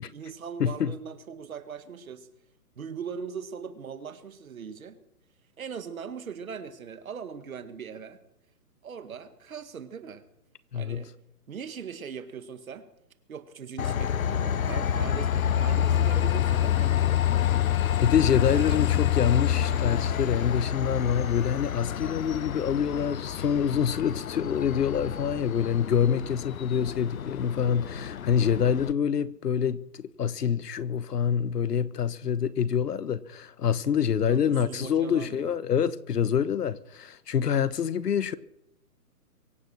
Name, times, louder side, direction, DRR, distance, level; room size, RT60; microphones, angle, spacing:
voice 1, 0.0-2.3 2.8-5.0 5.6-8.2 8.8-10.3 10.7-11.1 11.5-12.9 13.3-15.4 15.6-17.5 18.5-18.8 34.3-35.5, right 6 dB, 60° right, 1.9 m, -40 dB
voice 2, 0.6-0.9 10.7-11.0 17.8-38.4, left 8 dB, 75° left, 1.1 m, -26 dB
Train, 13.8-28.9, left 10 dB, 60° left, 0.7 m, -28 dB
23.5 x 8.3 x 6.3 m
hypercardioid pair, 175°, 48 cm